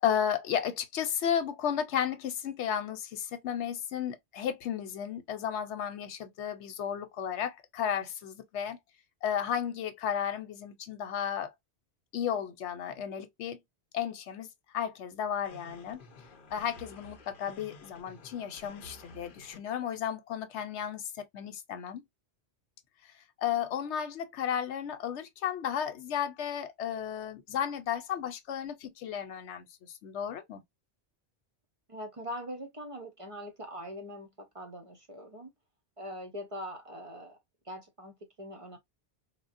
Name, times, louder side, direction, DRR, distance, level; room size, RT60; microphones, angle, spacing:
voice 1, 0.0-8.8 9.2-11.5 12.1-13.6 13.9-14.5 14.7-16.0 16.5-22.0 23.4-30.6, left 9 dB, 90° left, 1.0 m, -33 dB
sound 1, 15.4-19.6, left 2 dB, 55° left, 0.8 m, -52 dB
voice 2, 31.9-35.5 36.0-37.4 37.6-38.8, equal, 40° right, 0.6 m, -42 dB
3.6 x 2.0 x 2.5 m
omnidirectional pair, 1.1 m